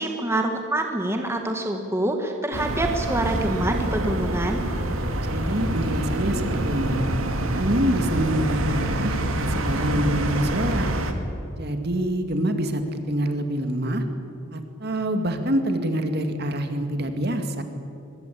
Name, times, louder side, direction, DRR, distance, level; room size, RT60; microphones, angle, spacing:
voice 1, 0.0-4.6, right 1 dB, 10° right, 3 dB, 1.7 m, -26 dB
sound 1, 2.5-11.1, right 1 dB, 70° right, 2.4 m, -26 dB
voice 2, 5.2-7.0 7.5-10.9 11.6-14.0 14.5-17.6, right 1 dB, 45° right, 7 dB, 2.3 m, -26 dB
23.0 x 22.0 x 8.5 m, 2.6 s
head